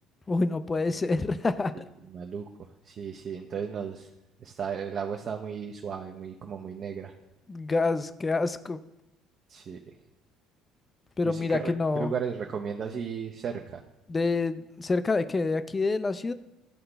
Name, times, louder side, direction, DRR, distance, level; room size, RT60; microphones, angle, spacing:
voice 1, 0.3-1.7 7.5-8.8 11.2-12.1 14.1-16.3, left 3 dB, 25° left, 13 dB, 0.3 m, -27 dB
voice 2, 2.1-4.1 4.4-7.1 9.5-9.8 11.2-13.8, right 6 dB, 45° right, 2 dB, 0.5 m, -35 dB
11.0 x 3.8 x 2.2 m, 0.92 s
supercardioid pair, 90°, 0 cm